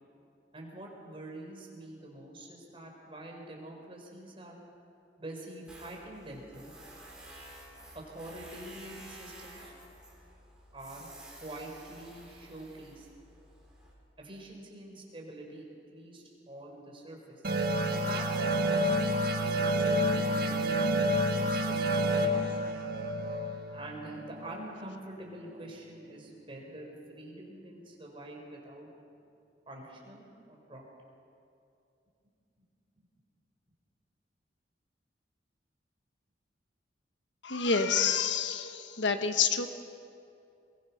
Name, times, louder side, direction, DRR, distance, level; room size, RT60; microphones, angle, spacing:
voice 1, 0.5-4.6 5.2-6.7 7.9-9.7 10.7-13.1 14.2-15.6 15.9-17.4 17.9-19.0 19.4-22.6 23.7-28.9 29.7-30.8 33.0-33.1, right 1 dB, 30° right, 0 dB, 4.2 m, -46 dB
Tools, 5.7-13.9, right 1 dB, 5° right, 4.4 m, -51 dB
sound 1, 17.4-24.7, equal, 55° right, 1.6 m, -29 dB
voice 2, 37.4-39.7, left 6 dB, 85° left, 8 dB, 1.3 m, -28 dB
22.5 x 21.5 x 5.9 m, 2.6 s
head